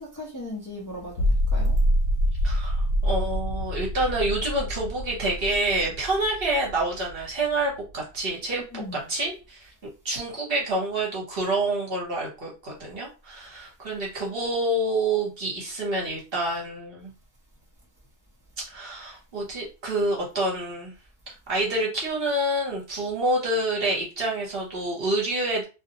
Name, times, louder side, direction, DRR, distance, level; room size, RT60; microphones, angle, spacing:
voice 1, 0.0-1.8 8.5-9.1, left 1 dB, 20° left, 0.6 m, -38 dB
sound 1, 1.0-7.5, equal, 75° left, 0.9 m, -26 dB
voice 2, 2.4-2.8 3.0-9.7 10.0-17.1 18.7-20.9 21.5-25.6, right 1 dB, 60° right, 1.1 m, -27 dB
2.4 x 2.0 x 2.8 m
omnidirectional pair, 1.2 m